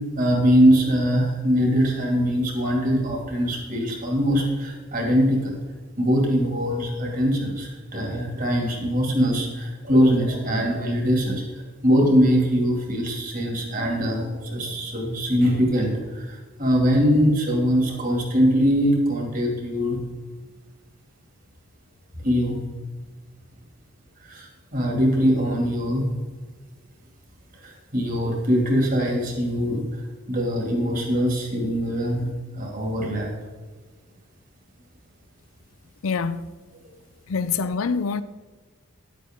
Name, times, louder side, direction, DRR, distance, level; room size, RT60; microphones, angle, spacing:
voice 1, 0.2-5.5 6.0-20.0 22.2-22.6 24.2-26.1 27.6-33.3, equal, 40° right, 2.5 m, -22 dB
voice 2, 36.0-36.4 37.3-38.2, left 5 dB, 80° left, 0.5 m, -25 dB
11.5 x 8.4 x 3.7 m
head